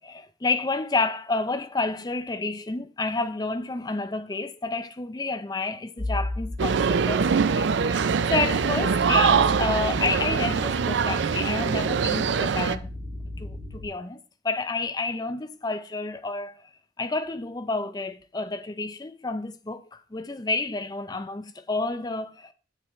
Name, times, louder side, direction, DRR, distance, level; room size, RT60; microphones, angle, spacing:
voice 1, 0.0-12.9 13.4-16.6 17.0-22.5, left 3 dB, 20° left, 0.5 m, -30 dB
sound 1, 6.0-13.9, left 1 dB, 10° right, 2.2 m, -35 dB
sound 2, 6.6-12.8, right 6 dB, 70° right, 0.4 m, -23 dB
8.5 x 7.6 x 3.1 m
head